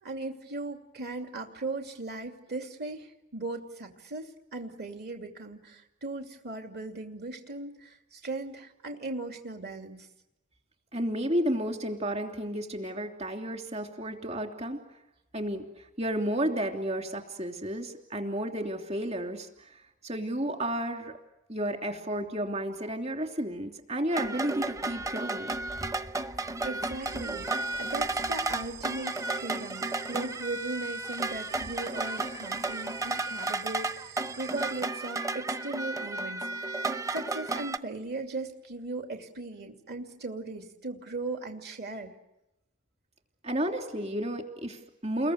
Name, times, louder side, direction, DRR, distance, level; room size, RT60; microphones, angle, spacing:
voice 1, 0.0-10.1 26.6-27.5 27.8-42.1, right 2 dB, 50° right, 3 dB, 2.8 m, -38 dB
voice 2, 10.9-14.8 15.3-15.6 16.0-19.5 20.0-21.1 21.5-25.5 43.4-45.3, right 1 dB, 30° right, 3 dB, 3.1 m, -32 dB
sound 1, 24.1-37.8, right 2 dB, 15° right, 0.9 m, -33 dB
sound 2, 27.0-34.8, right 9 dB, 65° right, 4.3 m, -49 dB
30.0 x 22.0 x 8.1 m, 0.90 s
head